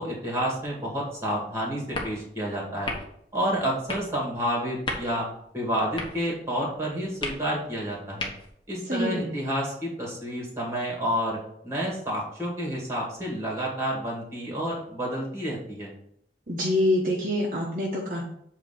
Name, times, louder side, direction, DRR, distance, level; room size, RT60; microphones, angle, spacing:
voice 1, 0.0-2.9 3.3-5.3 5.5-8.3 8.7-15.9, equal, 15° right, -3 dB, 2.3 m, -29 dB
sound 1, 0.7-8.7, left 2 dB, 30° left, 1.2 m, -39 dB
voice 2, 8.9-9.3 16.5-18.2, left 1 dB, 50° right, -3 dB, 1.1 m, -26 dB
8.0 x 3.0 x 5.9 m, 0.71 s
head